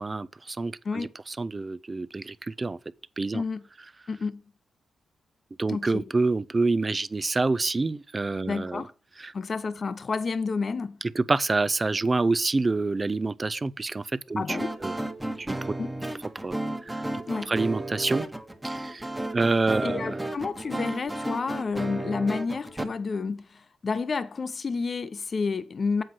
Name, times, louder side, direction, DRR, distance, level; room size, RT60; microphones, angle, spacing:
voice 1, 0.0-2.8 3.2-3.4 5.6-8.8 9.2-9.3 11.2-15.0 15.4-15.6 16.4-17.0 17.4-18.3 18.6-19.1 19.3-20.2, right 3 dB, 30° right, 0.4 m, -27 dB
voice 2, 4.1-4.4 5.7-6.0 8.4-8.9 9.3-11.0 14.4-14.8 15.8-15.9 17.3-17.5 19.8-26.0, left 4 dB, 50° left, 0.7 m, -30 dB
sound 1, 14.5-22.8, right 1 dB, 10° right, 1.3 m, -33 dB
7.7 x 4.7 x 5.7 m
supercardioid pair, 55°, 0 cm